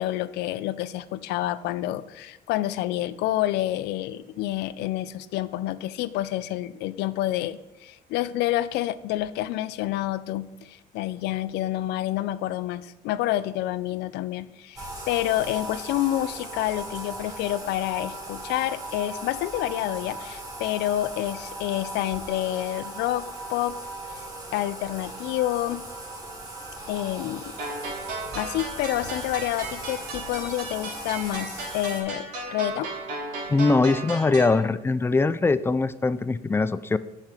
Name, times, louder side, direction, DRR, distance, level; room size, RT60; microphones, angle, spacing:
voice 1, 0.0-23.8 24.1-24.2 24.5-25.8 26.9-27.6 28.3-32.2 32.5-32.9, left 14 dB, 85° left, 15 dB, 0.5 m, -28 dB
Bathtub (filling or washing), 14.8-32.0, right 2 dB, 20° right, 2.6 m, -38 dB
sound 1, 27.6-34.6, right 2 dB, 90° right, 2.6 m, -35 dB
voice 2, 33.5-37.0, left 3 dB, 15° left, 15 dB, 0.3 m, -22 dB
7.4 x 5.8 x 5.0 m, 0.99 s
cardioid pair, 110°, 17 cm